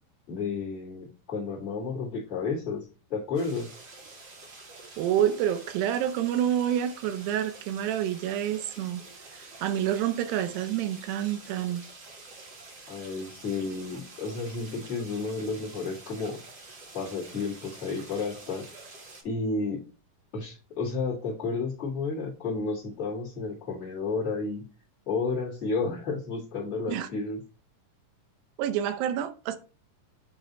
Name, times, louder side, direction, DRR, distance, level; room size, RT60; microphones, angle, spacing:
voice 1, 0.3-2.8 3.1-3.7 12.9-16.4 16.9-18.7 19.2-19.8 20.3-24.6 25.1-27.4, left 4 dB, 25° left, 1.8 m, -32 dB
sound 1, 3.3-19.2, right 3 dB, 55° right, 1.3 m, -48 dB
voice 2, 5.0-9.0 9.6-11.8 26.9-27.1 28.6-29.6, right 10 dB, 90° right, 2.4 m, -28 dB
7.9 x 3.3 x 4.0 m
omnidirectional pair, 4.1 m